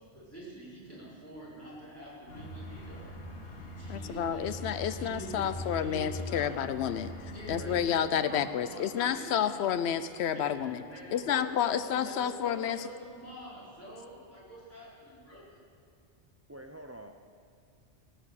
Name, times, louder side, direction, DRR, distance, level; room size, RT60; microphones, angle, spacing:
voice 1, 0.0-4.6 4.9-6.5 7.3-7.8 8.2-9.5 9.8-10.0 10.3-15.6, right 1 dB, 10° left, -8 dB, 4.3 m, -47 dB
sound 1, 0.9-5.6 6.3-11.2, equal, 55° right, 2.1 m, -58 dB
sound 2, 2.3-7.9, left 2 dB, 60° left, 1.8 m, -42 dB
voice 2, 3.9-10.8 11.1-12.8, left 9 dB, 75° left, 12 dB, 0.9 m, -30 dB
voice 3, 7.5-8.4 16.5-17.1, right 1 dB, 20° right, 5 dB, 0.4 m, -47 dB
18.0 x 7.7 x 6.8 m, 2.2 s
omnidirectional pair, 1.1 m